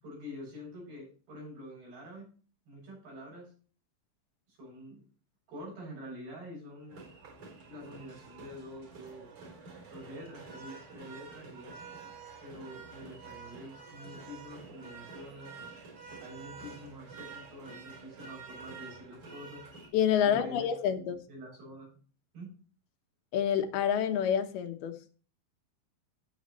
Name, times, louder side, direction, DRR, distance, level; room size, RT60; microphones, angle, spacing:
voice 1, 0.0-2.3 2.7-3.5 4.5-5.0 5.5-7.1 7.7-9.3 9.9-11.8 12.4-15.5 16.2-19.6 20.2-20.7 21.0-22.0 22.3-22.5, equal, 85° right, -2 dB, 9.1 m, -46 dB
sound 1, 6.9-19.9, right 4 dB, 45° right, 5.2 m, -48 dB
voice 2, 19.9-21.2 23.3-24.9, left 9 dB, 80° left, 7 dB, 3.0 m, -28 dB
16.5 x 7.2 x 3.1 m, 0.39 s
omnidirectional pair, 4.5 m